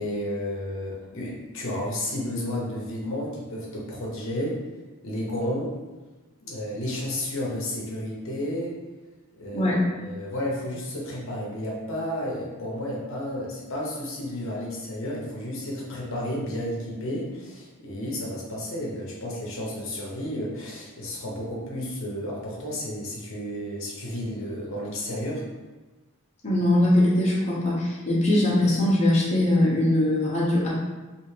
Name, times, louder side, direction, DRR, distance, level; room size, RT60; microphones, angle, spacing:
voice 1, 0.0-4.6 5.0-5.7 6.4-8.7 9.4-9.7 10.0-25.5, left 1 dB, 65° left, -4 dB, 0.8 m, -32 dB
voice 2, 9.5-9.9 26.4-30.7, left 1 dB, 30° left, -7 dB, 0.8 m, -21 dB
3.3 x 2.5 x 3.2 m, 1.2 s
head